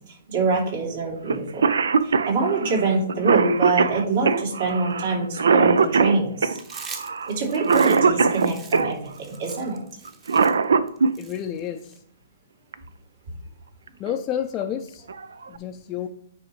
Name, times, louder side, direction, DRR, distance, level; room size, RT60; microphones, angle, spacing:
voice 1, 0.3-1.6 2.0-6.6 7.3-9.8, right 3 dB, 55° right, -1 dB, 3.0 m, -25 dB
Cough, 1.3-1.4 1.6-8.9 10.1-11.1 12.7-12.8 13.9-14.1 14.6-14.7 15.1-15.6, right 5 dB, 75° right, 0.4 m, -21 dB
Chewing mastication, 6.5-12.0, right 5 dB, 20° right, 1.1 m, -42 dB
voice 2, 11.2-12.0 14.0-15.0 15.5-16.1, left 9 dB, 30° left, 3 dB, 0.5 m, -30 dB
9.5 x 4.9 x 3.1 m, 0.65 s
hypercardioid pair, 125°, 0 cm